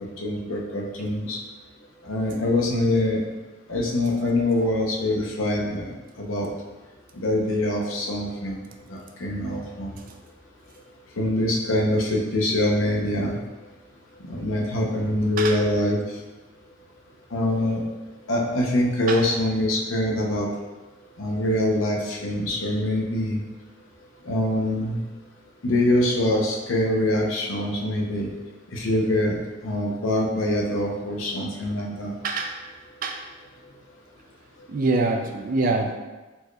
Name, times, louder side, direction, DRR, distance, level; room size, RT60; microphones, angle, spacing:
voice 1, 0.2-1.4 2.0-3.2 3.7-5.9 6.2-6.5 7.1-8.6 8.9-9.9 11.2-13.4 14.2-16.0 17.3-17.8 18.3-20.5 21.2-23.4 24.2-25.0 25.6-28.3 28.7-29.4 29.6-32.1, left 1 dB, 80° left, -2 dB, 0.7 m, -24 dB
voice 2, 32.2-32.6 33.0-33.2 34.7-35.9, right 3 dB, 40° right, 3 dB, 0.3 m, -24 dB
4.3 x 3.1 x 2.3 m, 1.2 s
head